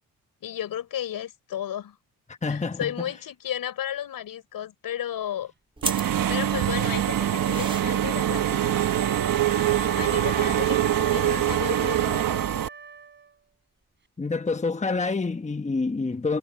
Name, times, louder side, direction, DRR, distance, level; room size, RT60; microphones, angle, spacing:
voice 1, 0.4-2.0 2.5-5.5 6.3-8.8 10.0-12.4, left 10 dB, 75° left, 6.6 m, -33 dB
voice 2, 2.4-2.9 14.2-16.4, left 3 dB, 20° left, 1.1 m, -27 dB
sound 1, 5.8-11.5, right 2 dB, 15° right, 3.3 m, -39 dB
Engine / Mechanisms, 5.8-12.7, right 11 dB, 70° right, 1.5 m, -24 dB
Wind instrument woodwind instrument, 5.9-13.5, right 4 dB, 30° right, 5.9 m, -39 dB
cardioid pair, 65°, 35 cm